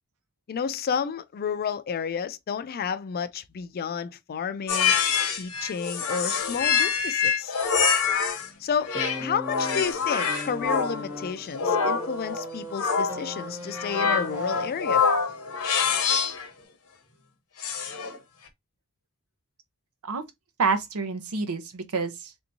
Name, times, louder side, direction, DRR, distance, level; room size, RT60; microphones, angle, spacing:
voice 1, 0.5-5.0 5.3-7.5 8.6-8.9 9.2-15.1, left 6 dB, 45° left, 0.4 m, -31 dB
sound 1, 4.7-8.5 8.9-16.5 17.6-18.2, left 6 dB, 75° left, 0.8 m, -26 dB
sound 2, 8.9-15.1 16.2-16.3, equal, 10° right, 0.6 m, -39 dB
voice 2, 20.6-22.4, right 4 dB, 70° right, 0.7 m, -28 dB
3.4 x 2.8 x 2.6 m
head